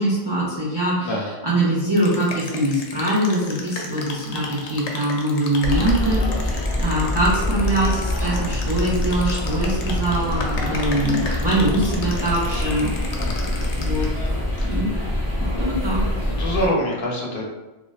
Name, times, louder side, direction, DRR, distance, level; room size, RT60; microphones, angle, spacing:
voice 1, 0.0-6.5 6.8-12.9 13.7-14.0 14.6-14.9 15.6-16.0, right 1 dB, 40° right, -7 dB, 0.3 m, -23 dB
voice 2, 1.0-1.3 13.2-13.7 14.0-14.1 14.6-14.7 15.4-15.7 16.2-17.5, equal, 60° left, -3 dB, 0.8 m, -27 dB
sound 1, 1.9-14.3, left 3 dB, 90° left, 0.9 m, -35 dB
sound 2, 5.6-16.7, left 1 dB, 15° right, 1.4 m, -25 dB
3.1 x 2.4 x 2.3 m, 1.1 s
omnidirectional pair, 1.1 m